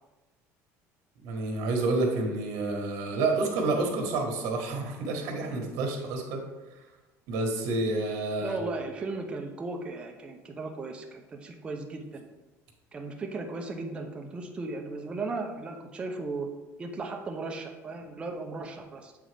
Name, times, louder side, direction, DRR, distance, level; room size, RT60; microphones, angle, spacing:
voice 1, 1.2-6.4 7.3-8.6, right 3 dB, 70° right, 2 dB, 1.3 m, -29 dB
voice 2, 8.4-12.2 12.9-16.5 16.8-19.1, right 3 dB, 15° right, 2 dB, 0.6 m, -36 dB
7.9 x 3.7 x 3.4 m, 1.1 s
cardioid pair, 165°, 6 cm